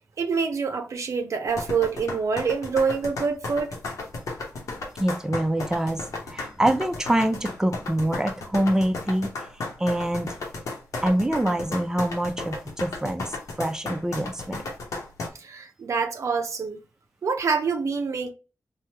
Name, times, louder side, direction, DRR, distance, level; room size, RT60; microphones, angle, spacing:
voice 1, 0.2-3.8 15.4-16.8 17.2-18.3, right 5 dB, 70° right, 0.6 m, -26 dB
sound 1, 1.5-15.3, left 3 dB, 85° left, 0.9 m, -34 dB
voice 2, 5.0-9.3 9.8-10.3 11.0-14.6, right 1 dB, 10° right, 0.5 m, -25 dB
3.1 x 2.3 x 2.8 m
cardioid pair, 45°, 5 cm